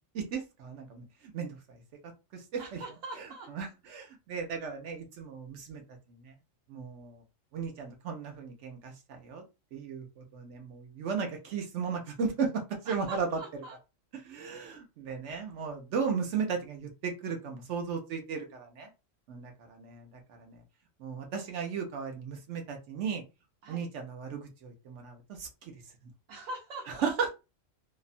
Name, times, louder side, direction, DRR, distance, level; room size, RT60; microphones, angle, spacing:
voice 1, 0.1-2.8 3.2-5.8 6.1-6.3 6.7-7.2 7.5-9.4 9.7-13.4 14.1-18.9 19.3-20.6 21.0-23.2 23.7-25.7 26.9-27.3, right 6 dB, 70° right, 4 dB, 0.9 m, -36 dB
voice 2, 2.6-3.5 12.9-13.8 14.4-14.8 23.6-23.9 26.3-27.1, right 2 dB, 90° right, -3 dB, 1.1 m, -43 dB
2.7 x 2.1 x 2.5 m, 0.27 s
omnidirectional pair, 1.3 m